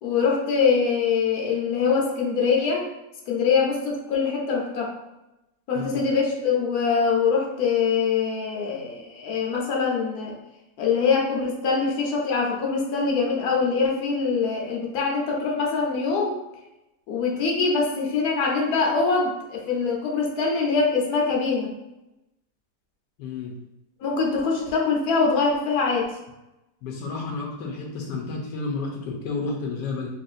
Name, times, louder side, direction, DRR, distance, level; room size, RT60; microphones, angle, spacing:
voice 1, 0.0-2.9 3.3-4.9 5.7-10.3 10.8-16.4 17.1-21.7 24.0-26.1, left 5 dB, 70° left, -1 dB, 1.3 m, -23 dB
voice 2, 23.2-23.5 26.8-30.1, left 3 dB, 90° left, 0 dB, 1.4 m, -31 dB
4.2 x 3.4 x 2.5 m, 0.94 s
omnidirectional pair, 1.8 m